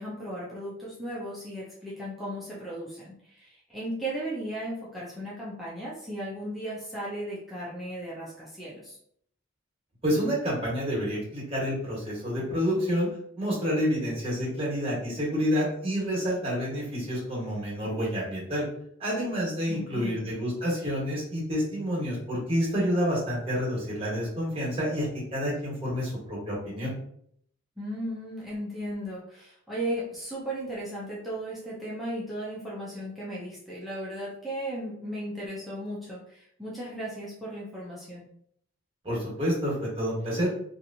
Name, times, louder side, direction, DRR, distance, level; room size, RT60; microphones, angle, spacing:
voice 1, 0.0-9.0 19.7-20.3 27.8-38.3, right 1 dB, ahead, -7 dB, 0.7 m, -36 dB
voice 2, 10.0-13.1 13.4-18.6 19.0-25.1 25.3-26.9 39.0-40.5, equal, 30° right, -5 dB, 1.3 m, -28 dB
3.0 x 2.6 x 2.7 m, 0.67 s
head